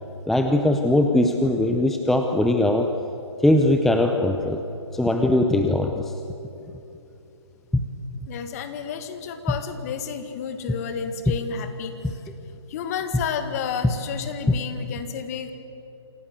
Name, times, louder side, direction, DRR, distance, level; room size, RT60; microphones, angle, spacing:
voice 1, 0.3-2.9 3.4-4.6 4.9-6.1, left 1 dB, ahead, 4 dB, 0.6 m, -20 dB
voice 2, 8.3-12.2 12.7-15.5, left 7 dB, 30° left, 9 dB, 1.9 m, -31 dB
27.0 x 17.0 x 8.1 m, 2.9 s
figure-of-eight pair, 140°, 15 cm